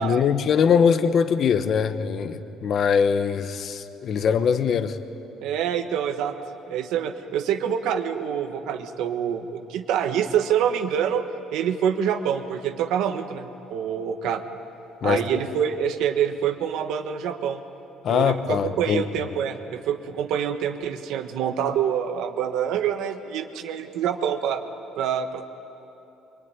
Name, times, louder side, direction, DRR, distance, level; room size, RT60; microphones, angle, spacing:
voice 1, 0.0-5.0 15.0-15.2 18.0-19.0, left 7 dB, 45° left, 10 dB, 1.0 m, -22 dB
voice 2, 5.4-6.4 6.7-11.2 11.5-14.4 15.0-17.6 18.1-24.6 25.0-25.4, right 8 dB, 70° right, 6 dB, 1.4 m, -26 dB
24.5 x 24.0 x 9.8 m, 2.9 s
cardioid pair, 160°, 0 cm